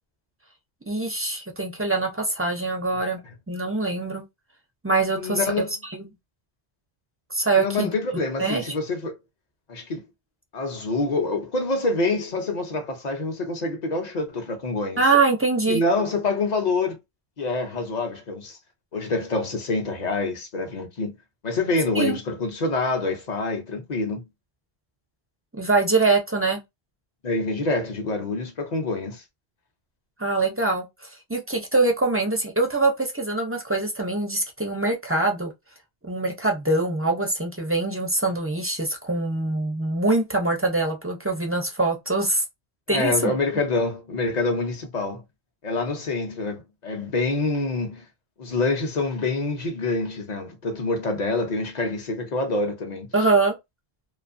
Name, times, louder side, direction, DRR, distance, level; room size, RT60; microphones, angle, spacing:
voice 1, 0.9-3.2 3.5-4.2 4.8-5.4 5.9-6.1 7.3-7.9 8.4-8.7 15.0-15.8 21.9-22.2 25.6-26.6 30.2-35.5 36.0-42.4 42.9-43.3 53.1-53.5, right 3 dB, 20° right, 0.3 m, -23 dB
voice 2, 5.1-5.7 7.6-9.2 9.7-10.0 10.5-15.0 15.7-17.0 17.4-18.6 18.9-21.1 21.4-24.2 27.2-29.2 42.9-45.2 45.6-48.0 48.4-53.1, left 3 dB, 50° left, 0.7 m, -26 dB
2.6 x 2.3 x 2.5 m
omnidirectional pair, 1.0 m